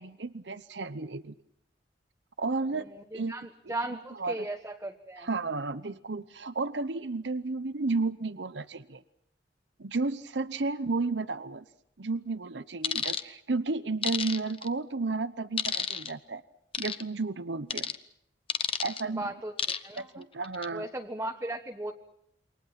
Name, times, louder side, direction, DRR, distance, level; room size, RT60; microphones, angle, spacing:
voice 1, 0.0-1.3 2.4-2.9 3.1-4.5 5.2-9.0 9.8-11.6 12.0-16.4 16.8-17.9 18.8-19.3 20.0-20.9, right 3 dB, 70° right, 13 dB, 0.9 m, -33 dB
voice 2, 3.1-5.3 19.0-19.5 19.8-20.2 20.7-21.9, right 1 dB, 15° right, 4 dB, 1.4 m, -36 dB
sound 1, 12.8-13.2 14.0-14.7 15.6-16.1 16.7-17.0 17.7-18.0 18.5-19.0 19.6-20.0 20.4-20.7, left 7 dB, 30° left, 1.0 m, -30 dB
28.5 x 25.0 x 5.9 m, 0.75 s
head